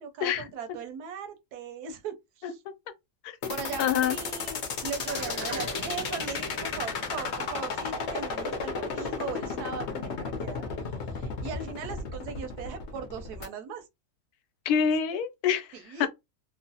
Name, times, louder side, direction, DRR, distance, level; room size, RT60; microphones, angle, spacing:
voice 1, 0.0-2.6 3.5-10.6 11.1-13.8 15.7-16.1, right 6 dB, 90° right, 1.2 m, -39 dB
voice 2, 3.2-3.5 3.8-4.2 14.7-16.1, left 8 dB, 80° left, 1.1 m, -27 dB
sound 1, 3.4-13.5, left 5 dB, 60° left, 0.8 m, -33 dB
sound 2, 5.0-9.6, equal, 40° right, 0.4 m, -41 dB
3.0 x 2.0 x 2.7 m
omnidirectional pair, 1.6 m